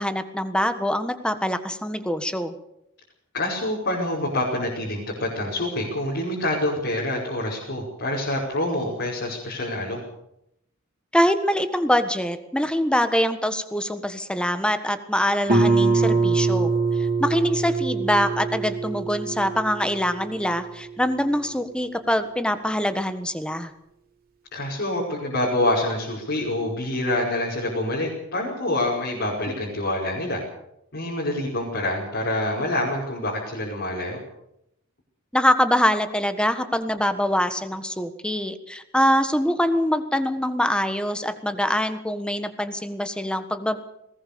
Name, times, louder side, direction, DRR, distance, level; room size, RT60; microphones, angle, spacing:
voice 1, 0.0-2.5 11.1-23.7 35.3-43.8, equal, 5° left, 10 dB, 1.5 m, -24 dB
voice 2, 3.3-10.0 24.5-30.4 30.9-34.2, left 1 dB, 60° left, -4 dB, 5.4 m, -26 dB
Guitar, 15.5-20.9, right 3 dB, 45° right, 3.2 m, -24 dB
20.5 x 19.0 x 6.9 m, 0.80 s
head